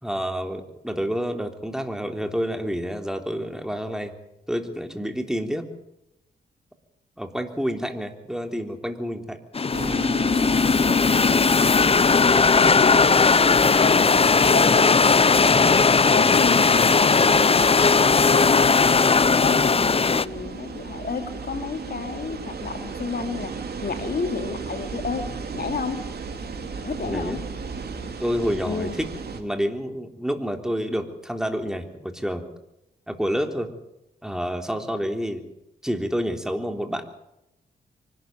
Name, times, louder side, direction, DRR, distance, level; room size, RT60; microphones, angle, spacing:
voice 1, 0.0-4.1 4.5-5.7 7.2-9.4 27.0-27.4 28.2-32.4 33.1-33.7 34.2-35.5 35.8-37.0, equal, 5° right, 5 dB, 3.6 m, -29 dB
sound 1, 9.5-20.2, left 4 dB, 35° left, 0.7 m, -18 dB
sound 2, 9.7-29.4, right 5 dB, 60° right, 3.2 m, -36 dB
voice 2, 12.6-13.2 13.8-14.1 14.5-17.7 18.1-19.1 19.4-23.5 23.8-26.0 26.8-27.5 28.6-29.0, left 5 dB, 60° left, 7 dB, 2.9 m, -31 dB
24.0 x 13.0 x 9.3 m, 0.87 s
cardioid pair, 50°, 18 cm